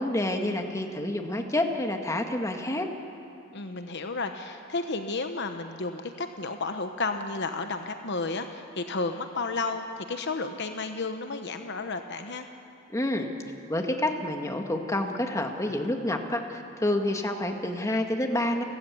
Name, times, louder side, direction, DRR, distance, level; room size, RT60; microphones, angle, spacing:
voice 1, 0.0-2.9 12.9-13.3 13.7-18.6, left 1 dB, 15° left, 4 dB, 1.7 m, -28 dB
voice 2, 3.5-12.5, left 3 dB, 55° left, 7 dB, 1.0 m, -32 dB
30.0 x 13.5 x 8.5 m, 2.8 s
head